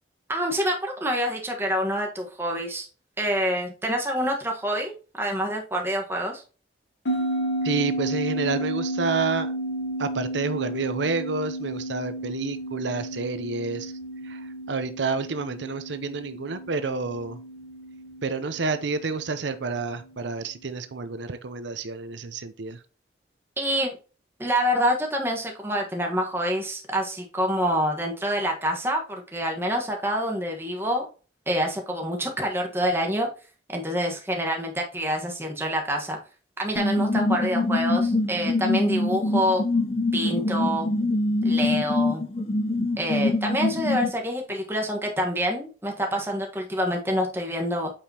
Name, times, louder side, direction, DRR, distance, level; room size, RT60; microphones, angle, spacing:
voice 1, 0.3-2.9 3.2-6.4 23.6-24.0 24.4-31.1 31.5-33.3 33.7-36.2 36.6-39.7 40.1-40.9 41.4-42.2 43.0-47.9, equal, 15° right, 1 dB, 1.3 m, -27 dB
sound 1, 7.1-19.8, right 1 dB, 85° left, 1.2 m, -32 dB
voice 2, 7.6-9.5 10.0-13.9 14.2-17.4 18.2-22.8, right 4 dB, 80° right, 11 dB, 0.6 m, -29 dB
sound 2, 36.8-44.1, left 2 dB, 30° left, 0.6 m, -24 dB
8.7 x 4.9 x 2.9 m, 0.36 s
head